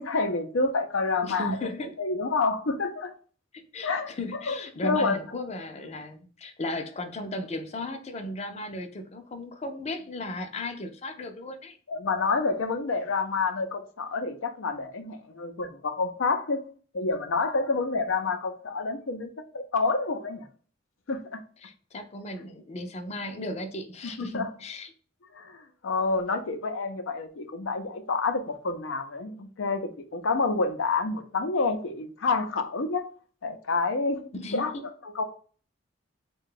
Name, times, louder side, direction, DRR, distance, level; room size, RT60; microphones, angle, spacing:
voice 1, 0.0-1.6 2.0-3.1 3.8-4.1 4.5-5.2 11.9-16.6 16.9-20.5 21.1-21.4 24.2-24.5 25.3-33.1 33.4-34.2 34.5-34.7 35.0-35.2, left 3 dB, 85° left, 0.6 m, -28 dB
voice 2, 1.2-1.9 3.5-11.8 21.6-24.9 34.3-34.8, left 1 dB, 35° left, 0.5 m, -36 dB
3.6 x 2.3 x 3.7 m
head